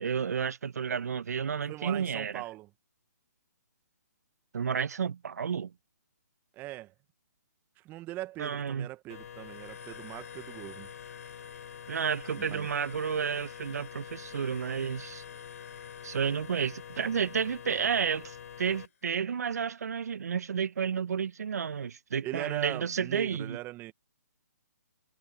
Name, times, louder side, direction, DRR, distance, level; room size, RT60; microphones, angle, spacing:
voice 1, 0.0-2.4 4.5-5.7 8.4-8.9 11.9-15.2 16.0-23.6, right 7 dB, 65° right, 1.3 m, -31 dB
voice 2, 1.7-2.7 6.5-6.9 7.8-10.9 12.3-12.7 22.2-23.9, right 17 dB, 20° right, 1.3 m, -40 dB
sound 1, 9.1-18.9, left 8 dB, 60° left, 6.1 m, -45 dB
hypercardioid pair, 140°, 9 cm